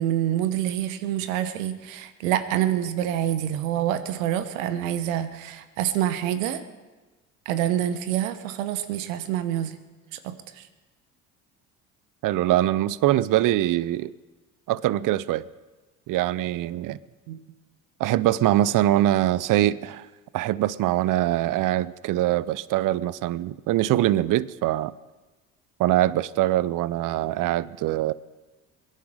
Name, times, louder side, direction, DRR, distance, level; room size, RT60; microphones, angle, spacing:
voice 1, 0.0-6.6 7.5-9.8 10.1-10.6 17.3-17.4 24.0-24.1, right 11 dB, 85° right, 12 dB, 1.1 m, -27 dB
voice 2, 12.2-14.1 14.7-15.4 16.1-17.0 18.0-20.1 20.3-24.9 25.8-28.1, right 14 dB, 55° right, 19 dB, 0.6 m, -23 dB
22.5 x 10.5 x 4.9 m, 1.2 s
hypercardioid pair, 65°, 39 cm